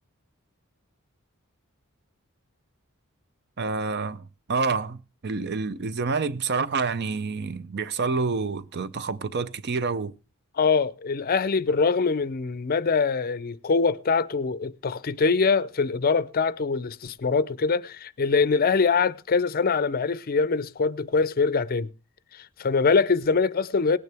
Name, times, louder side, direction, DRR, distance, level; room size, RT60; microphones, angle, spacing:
voice 1, 3.6-10.1, right 4 dB, 50° right, 0.6 m, -28 dB
voice 2, 10.6-21.9 22.3-24.0, left 4 dB, 45° left, 0.5 m, -23 dB
18.5 x 9.5 x 3.4 m
head